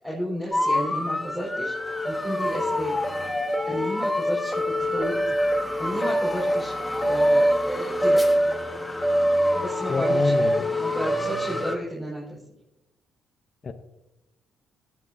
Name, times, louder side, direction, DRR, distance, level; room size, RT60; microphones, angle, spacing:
voice 1, 0.0-3.0 3.6-8.3 9.5-10.3 10.7-12.4, equal, 10° right, -7 dB, 4.5 m, -33 dB
sound 1, 0.5-11.8, equal, 10° left, 1.4 m, -24 dB
voice 2, 9.9-10.6 13.6-13.7, left 4 dB, 45° left, 5 dB, 0.7 m, -27 dB
18.0 x 8.9 x 2.7 m, 0.92 s
cardioid pair, 90°, 0 cm